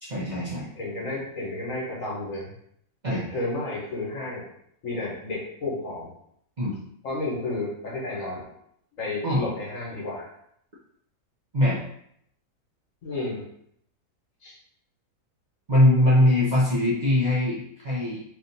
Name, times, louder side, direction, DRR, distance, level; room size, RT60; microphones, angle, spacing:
voice 1, 0.0-0.7 3.0-3.2 6.6-6.8 9.2-9.4 11.5-11.8 15.7-18.2, left 1 dB, 40° right, -7 dB, 0.6 m, -22 dB
voice 2, 0.7-2.5 3.1-4.4 4.8-6.1 7.0-8.5 9.0-10.3 13.0-13.4 14.4-14.5 15.7-16.3, left 2 dB, 60° left, -4 dB, 1.5 m, -32 dB
3.4 x 2.7 x 4.0 m, 0.71 s
omnidirectional pair, 1.6 m